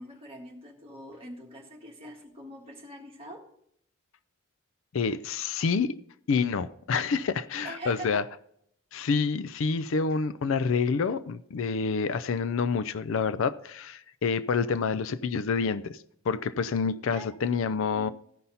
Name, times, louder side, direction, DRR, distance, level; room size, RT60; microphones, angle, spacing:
voice 1, 0.0-3.5 7.6-8.2 17.1-17.3, right 1 dB, 25° right, -1 dB, 1.7 m, -43 dB
voice 2, 4.9-5.9 6.3-8.2 8.9-16.0 16.3-18.1, left 5 dB, 60° left, 14 dB, 0.4 m, -28 dB
15.0 x 5.6 x 4.0 m, 0.69 s
head